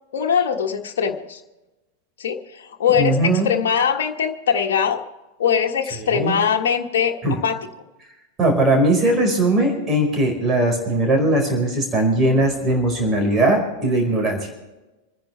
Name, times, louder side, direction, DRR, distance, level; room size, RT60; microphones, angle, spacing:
voice 1, 0.1-1.4 2.2-5.0 5.4-7.7, left 7 dB, 60° left, 2 dB, 1.5 m, -21 dB
voice 2, 3.0-3.5 6.0-6.3 7.2-7.3 8.4-14.5, right 1 dB, 25° right, 2 dB, 4.8 m, -19 dB
28.0 x 10.5 x 3.3 m, 1.1 s
figure-of-eight pair, 90°, 0 cm